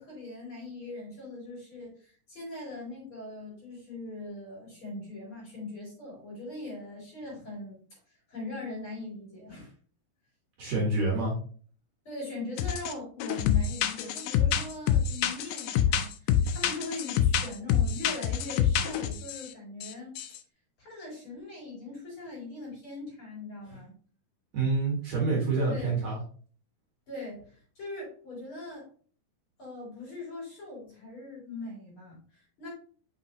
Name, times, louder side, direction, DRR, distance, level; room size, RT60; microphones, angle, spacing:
voice 1, 0.0-7.8 8.3-9.7 12.1-20.2 20.8-23.9 25.6-26.0 27.1-28.9 29.6-32.7, left 2 dB, 35° left, -4 dB, 3.7 m, -41 dB
voice 2, 10.6-11.3 24.5-26.2, right 3 dB, 50° right, -3 dB, 2.8 m, -27 dB
sound 1, 12.6-12.9 13.2-19.5 19.8-19.9 20.2-20.4, left 9 dB, 80° left, 2.0 m, -26 dB
6.0 x 5.9 x 2.9 m, 0.43 s
omnidirectional pair, 4.4 m